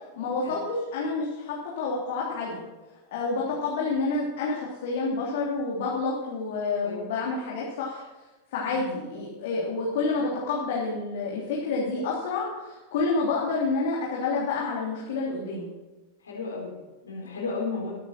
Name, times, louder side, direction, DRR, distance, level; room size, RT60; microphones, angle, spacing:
voice 1, 0.2-2.6 3.1-8.0 8.5-15.7, left 3 dB, 55° left, -4 dB, 3.1 m, -29 dB
voice 2, 16.2-17.9, left 4 dB, 70° left, -1 dB, 4.6 m, -34 dB
20.5 x 9.4 x 4.4 m, 1.2 s
figure-of-eight pair, 90°, 0 cm